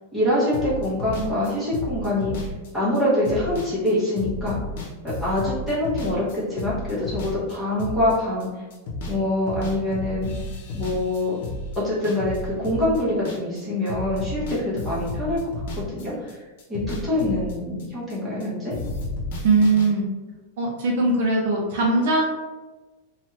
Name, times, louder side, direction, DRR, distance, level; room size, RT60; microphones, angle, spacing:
voice 1, 0.1-4.6 5.2-8.5 9.1-10.3 10.7-11.4 11.7-16.4 16.7-18.7, left 1 dB, 5° right, -10 dB, 0.9 m, -25 dB
sound 1, 0.5-9.2 9.5-13.6 13.9-18.5 18.7-19.9, left 2 dB, 55° left, 0.7 m, -32 dB
voice 2, 19.4-20.0 20.6-22.2, right 3 dB, 50° right, -1 dB, 0.6 m, -20 dB
3.0 x 2.3 x 3.1 m, 1.2 s
supercardioid pair, 180°, 0 cm